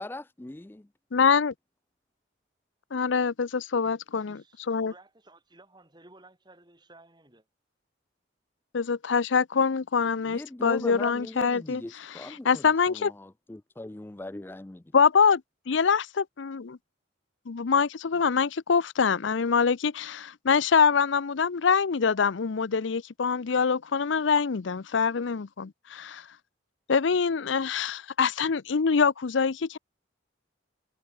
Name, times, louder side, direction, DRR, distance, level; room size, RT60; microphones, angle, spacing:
voice 1, 0.0-0.9 10.3-12.6 12.9-14.8, left 1 dB, 10° left, 0.4 m, -39 dB
voice 2, 1.1-1.5 2.9-4.4 4.7-4.9 8.7-13.1 14.9-15.4 15.7-16.8 17.5-26.2 26.9-29.8, left 5 dB, 75° left, 0.6 m, -25 dB
voice 3, 4.1-7.5, right 2 dB, 25° right, 5.9 m, -55 dB
head